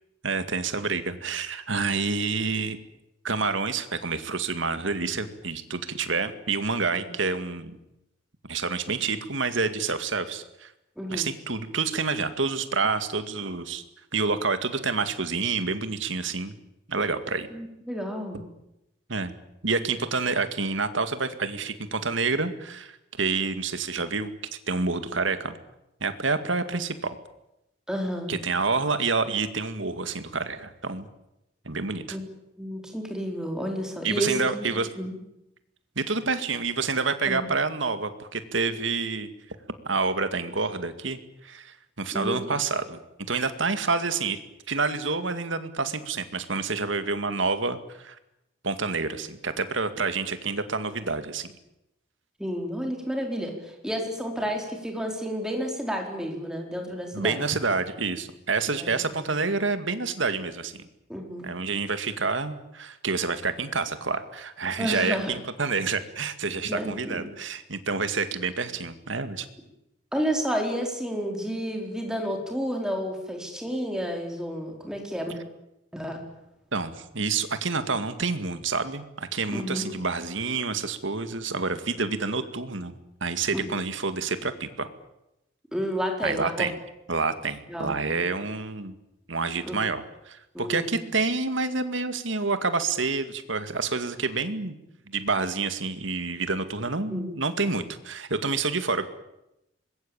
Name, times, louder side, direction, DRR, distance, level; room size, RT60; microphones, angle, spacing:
voice 1, 0.2-2.8 3.2-7.8 8.5-10.7 11.1-13.8 14.1-16.5 16.9-17.5 19.1-19.3 19.6-24.3 24.7-25.6 26.0-27.2 28.3-31.1 31.7-32.2 34.0-34.9 36.0-39.3 39.9-43.0 43.3-44.4 44.7-48.2 48.6-51.5 57.1-60.8 61.4-69.5 76.7-82.9 83.2-84.9 86.2-86.7 87.1-89.0 89.3-94.8 95.1-99.1, right 4 dB, 70° right, 10 dB, 2.1 m, -28 dB
voice 2, 11.0-11.3 17.5-18.4 27.9-28.3 32.1-32.2 32.6-34.7 35.0-35.1 37.3-37.4 42.1-42.5 52.4-57.4 58.8-59.3 61.1-61.5 64.8-65.4 66.7-67.3 70.1-75.3 75.9-76.2 79.5-79.8 83.5-83.6 85.7-86.7 87.7-88.0 89.6-89.8 90.5-91.0 97.1-97.3, equal, 5° right, 2 dB, 4.5 m, -31 dB
25.0 x 21.5 x 8.9 m, 0.88 s
head